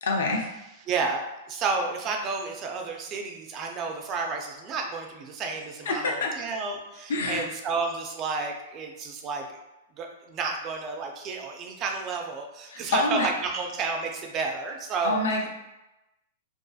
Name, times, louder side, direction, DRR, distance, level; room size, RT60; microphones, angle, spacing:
voice 1, 0.0-0.5 5.9-6.3 7.1-7.5 12.7-13.3 15.0-15.5, left 3 dB, 80° left, 1 dB, 0.5 m, -26 dB
voice 2, 0.9-9.6 10.0-15.2, right 4 dB, 25° right, 2 dB, 0.3 m, -31 dB
2.6 x 2.4 x 2.3 m, 0.97 s
hypercardioid pair, 155°, 0 cm